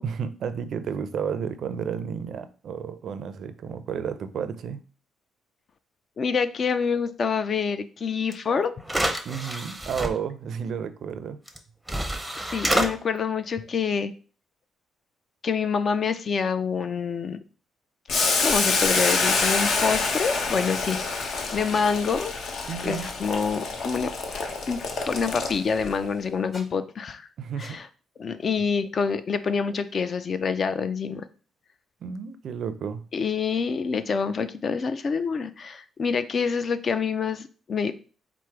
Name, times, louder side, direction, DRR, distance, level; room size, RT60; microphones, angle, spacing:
voice 1, 0.0-4.8 9.2-11.4 22.7-23.1 27.4-27.8 32.0-33.0, right 7 dB, 65° right, 0.4 m, -32 dB
voice 2, 6.2-8.7 12.4-14.1 15.4-17.4 18.4-22.3 22.8-24.1 24.7-27.2 27.6-27.9 28.2-31.3 33.1-37.9, left 5 dB, 45° left, 0.4 m, -27 dB
sound 1, 8.3-8.4 8.8-10.1 11.5-11.6 11.9-12.9, right 1 dB, 5° right, 0.6 m, -27 dB
Boiling, 18.1-25.9, left 3 dB, 65° left, 0.8 m, -26 dB
Squeak, 20.3-20.5 21.7-21.9 22.9-23.2 24.3-24.5 25.5-25.6 26.4-26.6 27.6-27.8, left 2 dB, 30° left, 1.0 m, -43 dB
4.5 x 2.0 x 4.5 m
cardioid pair, 90°, 0 cm